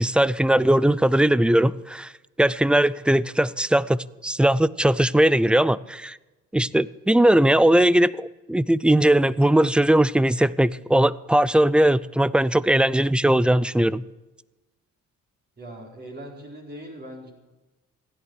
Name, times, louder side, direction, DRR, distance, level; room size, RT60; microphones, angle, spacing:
voice 1, 0.0-2.1 2.4-6.2 6.5-14.0, right 1 dB, 5° right, 20 dB, 0.4 m, -19 dB
voice 2, 15.6-17.3, right 1 dB, 35° right, 0 dB, 4.5 m, -40 dB
16.0 x 11.0 x 6.3 m, 1.1 s
cardioid pair, 90°, 30 cm